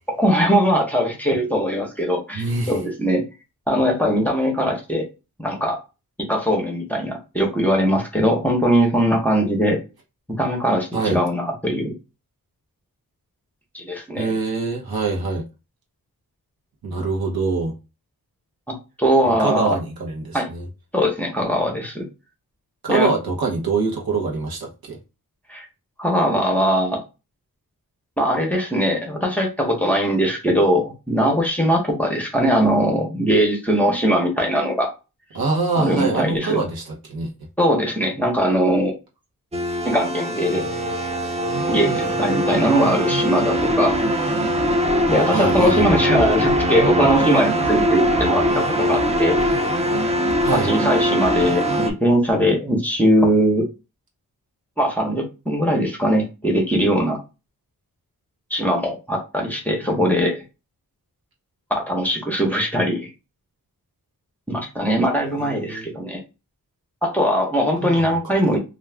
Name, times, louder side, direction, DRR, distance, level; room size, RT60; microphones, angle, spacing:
voice 1, 0.1-3.2 3.7-5.1 5.4-5.8 6.3-9.8 10.3-11.9 13.7-14.3 19.0-19.8 20.3-20.5 20.9-22.0 22.9-23.1 25.5-25.6 26.0-27.0 28.2-34.9 35.7-36.6 37.6-38.9 39.8-40.6 41.7-44.0 45.1-49.4 50.6-53.7 54.8-57.2 58.5-60.4 61.7-63.1 64.5-66.2 67.0-68.6, equal, 5° left, 0.7 m, -20 dB
voice 2, 2.3-2.8 10.9-11.2 14.2-15.5 16.8-17.7 19.2-20.6 22.8-25.0 35.3-37.3 45.3-46.2 50.4-50.7 65.4-65.9 67.8-68.4, right 4 dB, 75° right, 0.9 m, -24 dB
sound 1, 39.5-51.9, equal, 20° right, 0.3 m, -21 dB
2.4 x 2.3 x 3.2 m
wide cardioid pair, 125°, 37 cm